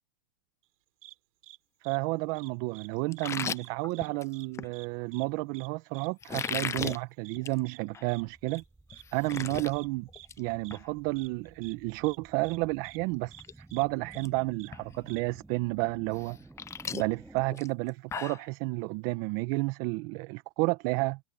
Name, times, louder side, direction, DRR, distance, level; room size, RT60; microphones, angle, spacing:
sound 1, 1.0-1.1 1.4-1.6 1.8-2.0 2.3-2.9 3.1-3.3 3.5-4.1 4.3-4.5 4.7-4.9 5.1-5.2 5.5-5.7 5.9-6.1 6.4-6.5 6.8-6.9 7.2-7.4 7.7-7.8 8.1-8.2 8.5-8.6 8.9-9.0 9.3-9.4 9.7-9.9 10.1-10.3 10.6-10.8 11.2-11.3 11.6-11.7 12.0-12.2 12.4-12.6 12.8-13.0 13.3-13.4 13.7-13.8 14.1-14.3 14.6-14.7 15.1-15.2, right 17 dB, 60° right, 7.4 m, -50 dB
voice 1, 1.8-8.6 9.1-10.1 10.4-16.4 16.9-21.2, right 25 dB, 45° right, 1.3 m, -31 dB
sound 2, 3.1-4.7 6.2-7.0 7.4-7.6 7.9-8.0 8.5-8.6 8.9-9.7 10.1-10.4 10.7-10.8 12.7-12.8 13.2-13.5 13.8-14.3 14.7-14.8 16.2-18.5, left 7 dB, 15° left, 0.5 m, -36 dB
sound 3, 8.3-17.5, right 2 dB, 5° right, 7.2 m, -54 dB
hypercardioid pair, 125°, 20 cm